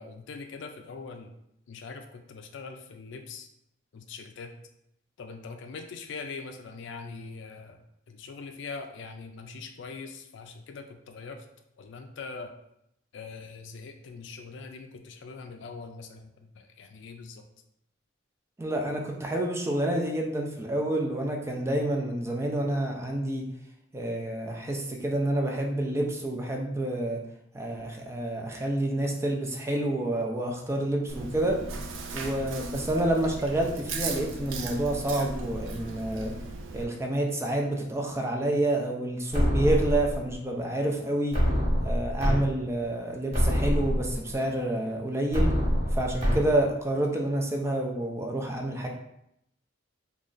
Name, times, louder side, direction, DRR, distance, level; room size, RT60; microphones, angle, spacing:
voice 1, 0.0-1.3 1.7-3.5 3.9-4.5 5.2-7.8 8.1-11.4 11.8-12.5 13.1-17.4, left 4 dB, 65° left, 5 dB, 0.4 m, -42 dB
voice 2, 18.6-23.5 23.9-27.2 27.5-31.6 32.1-36.3 36.7-41.4 41.8-45.5 45.9-48.9, right 1 dB, 15° right, 1 dB, 0.4 m, -28 dB
Chewing mastication, 31.1-36.8, right 3 dB, 75° right, 0.4 m, -37 dB
sound 1, 39.3-40.3 41.3-42.4 42.8-42.9 43.3-44.3 45.3-46.4, equal, 35° right, 1.3 m, -25 dB
3.1 x 2.4 x 3.8 m, 0.78 s
head